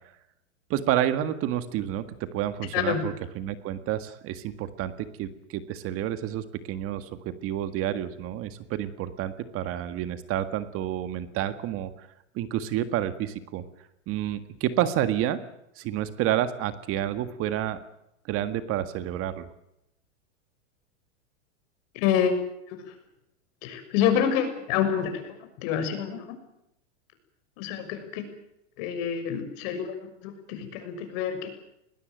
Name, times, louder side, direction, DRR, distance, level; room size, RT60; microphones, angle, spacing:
voice 1, 0.7-12.1 12.3-13.6 14.1-15.4 15.8-17.8 18.3-19.5, right 11 dB, 35° right, 11 dB, 1.8 m, -29 dB
voice 2, 21.9-22.4 22.7-22.9 23.6-26.3 27.6-28.3 28.8-29.9 30.2-31.5, left 8 dB, 50° left, 7 dB, 6.6 m, -27 dB
20.5 x 20.5 x 9.2 m, 0.82 s
supercardioid pair, 135°, 37 cm